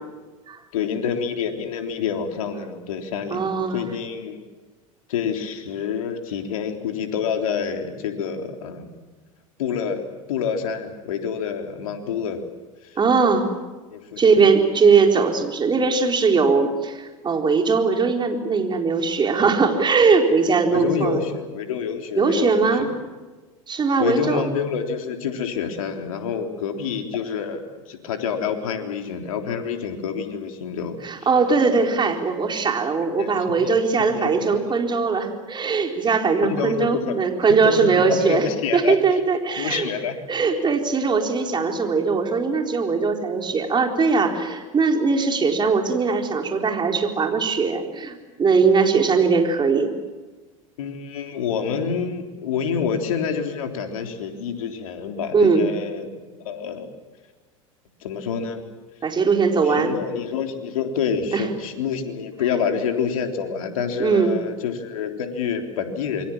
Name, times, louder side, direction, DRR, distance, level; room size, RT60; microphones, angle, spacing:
voice 1, 0.7-3.5 3.7-4.4 5.1-8.9 9.6-12.4 12.8-13.0 13.9-14.4 20.7-22.9 24.0-27.6 27.9-31.0 33.2-33.3 33.6-33.8 34.1-34.8 36.4-37.2 37.5-39.2 39.6-40.1 50.8-56.9 58.0-58.6 59.6-66.3, left 6 dB, 75° left, 4 dB, 3.6 m, -27 dB
voice 2, 3.3-3.8 13.0-13.4 14.2-21.2 22.2-22.9 23.7-24.4 31.0-38.5 38.7-39.9 40.3-49.9 55.3-55.7 59.0-59.9 61.3-61.5 64.0-64.4, right 4 dB, 25° right, 3 dB, 4.2 m, -20 dB
27.5 x 23.0 x 7.4 m, 1.3 s
hypercardioid pair, 90°, 18 cm